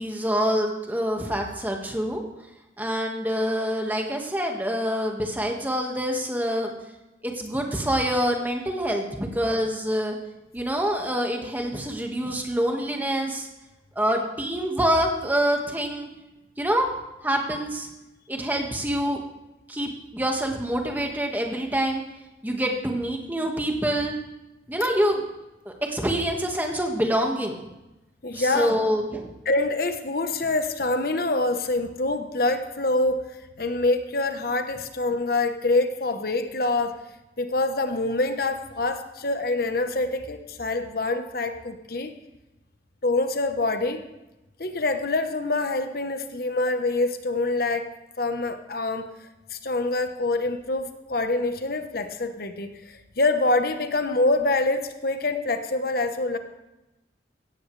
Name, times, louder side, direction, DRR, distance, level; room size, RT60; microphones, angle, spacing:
voice 1, 0.0-2.2 2.8-6.7 7.2-10.2 10.5-13.5 13.9-16.1 16.6-16.9 17.2-17.9 18.3-19.2 19.7-22.0 22.4-24.2 24.7-25.2 25.6-27.6 28.3-29.3, equal, 10° right, 2 dB, 1.7 m, -26 dB
voice 2, 28.2-28.8 29.5-37.0 37.4-42.2 43.0-44.0 44.6-47.9 48.2-49.1 49.5-56.4, left 2 dB, 55° left, 8 dB, 1.1 m, -25 dB
17.0 x 14.0 x 3.3 m, 0.98 s
head